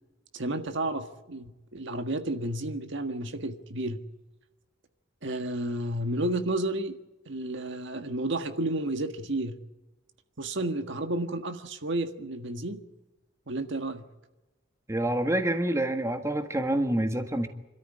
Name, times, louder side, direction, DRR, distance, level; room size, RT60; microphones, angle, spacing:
voice 1, 0.3-4.0 5.2-7.0 7.2-9.5 10.4-12.8 13.5-14.0, right 1 dB, 65° right, 7 dB, 1.6 m, -31 dB
voice 2, 14.9-17.5, right 1 dB, 15° right, 6 dB, 1.6 m, -27 dB
26.0 x 13.5 x 9.9 m, 1.1 s
head